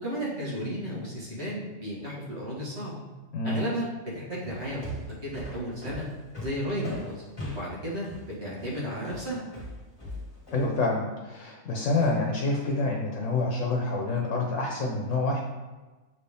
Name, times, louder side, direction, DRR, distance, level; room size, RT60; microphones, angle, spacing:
voice 1, 0.0-3.0 3.4-4.9 5.2-6.1 6.4-7.2 7.5-9.4, equal, 55° right, -6 dB, 2.1 m, -33 dB
sound 1, 4.4-10.7, equal, 20° left, 1.8 m, -39 dB
voice 2, 10.5-15.4, left 3 dB, 70° left, -1 dB, 1.3 m, -27 dB
7.0 x 4.3 x 3.5 m, 1.2 s
omnidirectional pair, 1.4 m